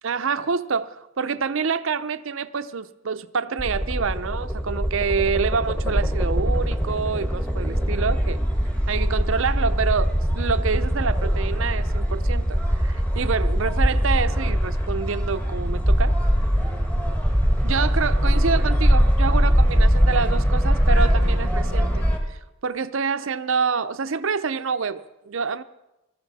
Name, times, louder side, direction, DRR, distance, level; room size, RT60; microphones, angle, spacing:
voice 1, 0.0-8.4 8.9-16.1 17.6-25.6, right 5 dB, 65° right, 0.6 m, -27 dB
sound 1, 3.6-22.2, equal, 5° left, 1.5 m, -21 dB
22.0 x 13.5 x 4.2 m
head